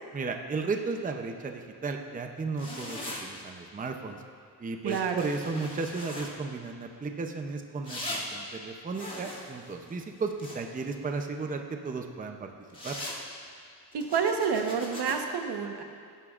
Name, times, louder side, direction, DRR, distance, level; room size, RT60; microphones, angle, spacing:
voice 1, 0.1-4.2 4.6-12.5 12.8-13.0, right 4 dB, 20° right, 4 dB, 0.6 m, -34 dB
sound 1, 2.6-3.2 4.9-6.3 7.8-8.2 8.9-10.9 12.7-13.2 13.9-15.1, left 1 dB, 20° left, 2.3 m, -40 dB
voice 2, 4.8-5.3 13.9-15.8, right 6 dB, 75° right, 4 dB, 1.2 m, -29 dB
21.5 x 11.0 x 2.5 m, 2.2 s
wide cardioid pair, 155°, 39 cm